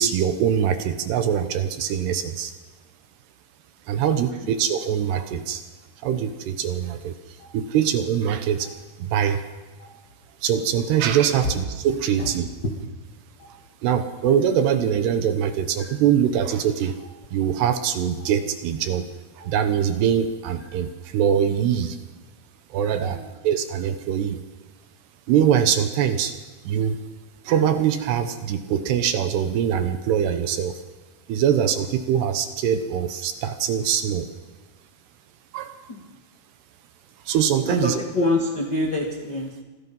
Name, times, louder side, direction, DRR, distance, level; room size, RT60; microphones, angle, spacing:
voice 1, 0.0-2.5 3.9-5.6 6.0-8.7 9.0-9.5 10.4-12.5 13.8-17.0 17.3-19.1 19.4-22.0 22.7-24.4 25.3-26.3 26.7-27.0 27.4-30.8 31.3-34.3 35.5-35.8 37.3-38.0, right 9 dB, 75° right, 9 dB, 2.8 m, -23 dB
voice 2, 4.1-4.5 12.2-12.3 23.0-23.3 35.9-36.0 37.7-39.6, left 2 dB, 50° left, 0 dB, 1.3 m, -26 dB
Stream, 7.4-7.5 8.6-8.7 9.8-9.9 11.0-11.1 12.2-12.3 13.4-13.5 14.6-14.7 15.8-15.9 17.0-17.1 18.2-18.3 19.4-19.5 20.6-20.7, left 3 dB, 65° left, 9.5 m, -50 dB
26.0 x 19.5 x 5.5 m, 1.3 s
omnidirectional pair, 5.4 m